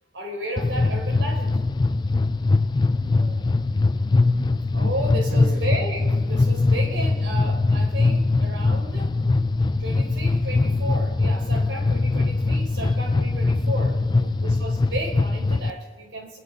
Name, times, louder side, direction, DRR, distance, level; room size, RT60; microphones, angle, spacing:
voice 1, 0.1-1.6 4.7-9.1 9.8-14.0 14.4-16.4, right 1 dB, 85° right, 1 dB, 4.1 m, -33 dB
sound 1, 0.6-15.7, left 3 dB, 25° left, 0.4 m, -22 dB
voice 2, 2.9-3.8 4.4-4.7 5.3-5.6 12.7-12.9 14.2-14.6, right 2 dB, 55° right, 0 dB, 1.7 m, -41 dB
23.0 x 11.5 x 4.2 m, 1.4 s
head